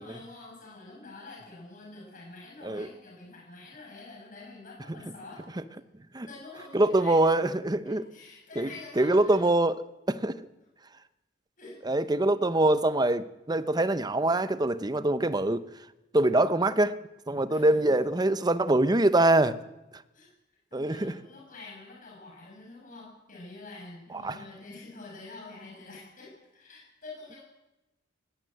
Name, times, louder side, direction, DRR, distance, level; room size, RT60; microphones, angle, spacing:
voice 1, 0.0-5.6 6.3-7.2 7.8-9.4 11.6-12.1 17.5-18.0 20.1-20.3 20.7-27.4, left 3 dB, 45° left, 7.3 m, -47 dB
voice 2, 6.7-8.0 8.6-8.7 9.0-9.8 10.1-10.4 11.8-15.7 16.1-17.0 17.3-19.6 20.7-21.1 24.2-24.4, right 2 dB, 20° right, 0.8 m, -24 dB
19.0 x 18.5 x 7.9 m
head